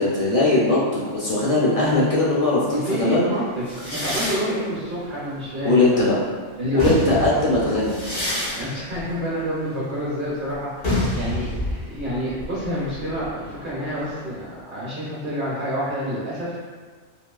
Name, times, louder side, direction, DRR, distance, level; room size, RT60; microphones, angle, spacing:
voice 1, 0.0-3.3 5.6-6.1 6.7-8.0, left 2 dB, 65° left, -7 dB, 0.3 m, -20 dB
voice 2, 2.6-6.0 6.6-7.2 8.6-16.6, equal, 50° right, -8 dB, 0.8 m, -28 dB
sound 1, 3.7-6.1 6.6-14.1, left 1 dB, 85° left, 1.5 m, -29 dB
3.6 x 2.3 x 2.3 m, 1.6 s
omnidirectional pair, 1.3 m